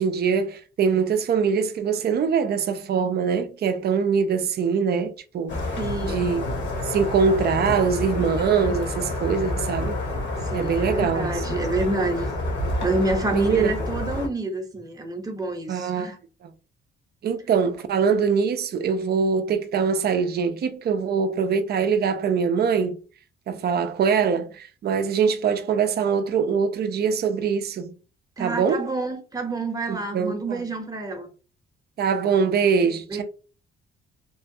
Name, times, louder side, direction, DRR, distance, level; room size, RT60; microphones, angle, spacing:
voice 1, 0.0-5.5 6.0-6.5 6.9-10.0 10.5-11.3 13.3-13.7 15.7-16.1 17.2-23.0 23.5-28.0 28.4-28.9 29.9-30.7 32.0-33.2, right 6 dB, 55° right, 0.5 m, -23 dB
sound 1, 5.5-14.3, left 2 dB, 65° left, 1.1 m, -28 dB
voice 2, 5.8-6.3 10.4-12.3 12.8-16.2 28.4-31.3 33.1-33.2, right 2 dB, 20° right, 0.8 m, -28 dB
3.0 x 2.3 x 2.7 m
cardioid pair, 90°, 20 cm